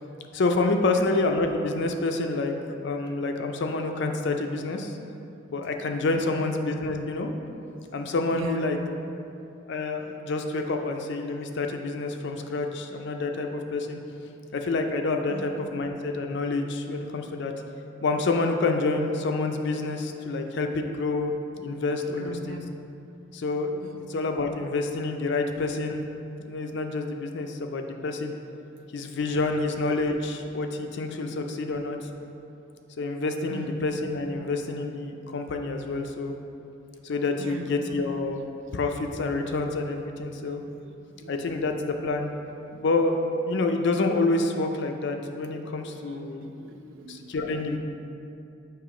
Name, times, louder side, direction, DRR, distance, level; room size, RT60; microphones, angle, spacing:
voice 1, 0.3-5.0 5.5-7.3 7.9-8.8 9.7-14.0 14.5-17.5 18.0-22.6 23.3-26.0 26.4-28.3 28.9-32.0 33.0-36.4 37.0-38.4 38.7-40.6 41.3-42.3 42.7-46.4 46.8-47.8, left 3 dB, 55° left, 4 dB, 0.4 m, -28 dB
voice 2, 8.3-8.7 15.3-15.5 22.2-22.7 23.8-24.1 28.6-28.7 33.5-33.8 37.4-37.7 40.6-41.3 46.3-47.3, right 4 dB, 65° right, 4 dB, 0.5 m, -40 dB
6.7 x 3.1 x 4.9 m, 2.7 s
head